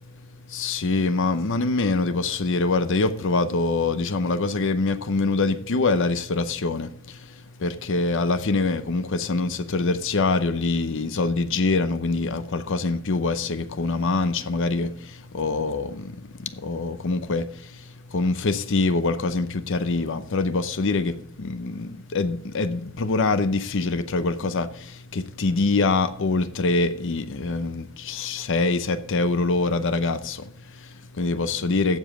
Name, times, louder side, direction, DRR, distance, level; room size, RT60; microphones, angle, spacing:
voice 1, 0.5-32.0, left 3 dB, 60° left, 0.7 m, -25 dB
15.0 x 5.1 x 6.9 m
head